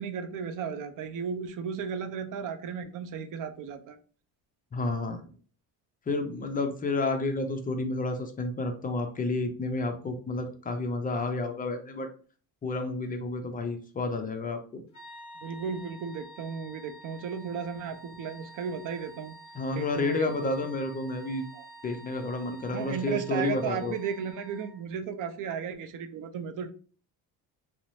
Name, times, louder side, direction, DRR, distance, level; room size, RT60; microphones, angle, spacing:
voice 1, 0.0-4.0 15.4-19.3 19.7-20.5 21.5-21.6 22.7-26.7, right 6 dB, 50° right, 9 dB, 0.4 m, -35 dB
voice 2, 4.7-5.2 6.1-12.1 12.6-14.8 19.5-21.4 21.8-24.0, left 2 dB, 25° left, 5 dB, 0.4 m, -30 dB
sound 1, 14.9-24.9, right 2 dB, 45° left, 0.7 m, -49 dB
2.6 x 2.0 x 3.0 m, 0.41 s
cardioid pair, 115°, 41 cm